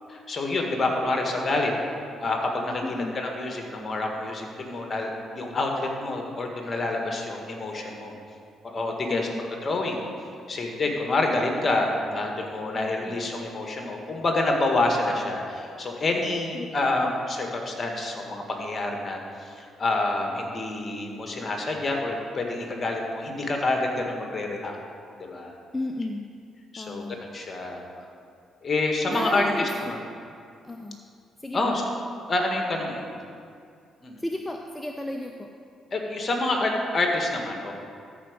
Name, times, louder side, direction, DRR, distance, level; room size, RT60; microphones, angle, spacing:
voice 1, 0.3-1.7 2.2-8.2 8.6-9.3 9.6-10.0 10.5-24.8 25.2-25.5 26.7-27.0 27.3-27.8 28.6-30.0 31.5-31.8 32.3-33.0 34.0-34.2 35.9-37.7, left 2 dB, 40° left, 1 dB, 1.7 m, -27 dB
voice 2, 2.8-3.2 9.1-9.5 12.7-13.2 16.5-16.7 25.7-26.3 26.8-27.4 29.1-30.0 30.6-31.0 31.4-31.7 34.2-35.5, left 1 dB, 15° left, 3 dB, 0.6 m, -34 dB
13.5 x 4.8 x 5.1 m, 2.3 s
hypercardioid pair, 55°, 0 cm